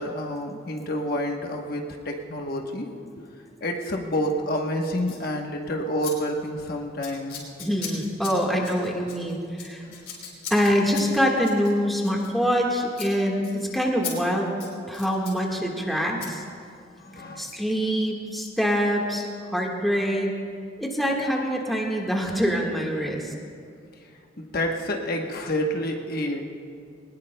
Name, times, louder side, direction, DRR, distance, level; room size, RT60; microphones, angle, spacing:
voice 1, 0.0-2.9 3.6-7.4 17.0-17.6 24.4-26.4, equal, 50° left, 1 dB, 1.1 m, -28 dB
Scissors, 5.0-5.2 6.0-6.1 6.4-6.6 7.0-12.7 12.9-13.1 13.4-13.5 14.0-14.1 14.5-15.4 16.2-16.3, left 7 dB, 65° left, 3.7 m, -39 dB
voice 2, 7.6-9.8 10.5-14.5 14.9-16.4 17.4-19.3 19.5-20.3 20.8-23.3, equal, ahead, -1 dB, 1.5 m, -25 dB
21.0 x 19.5 x 2.2 m, 2.3 s
head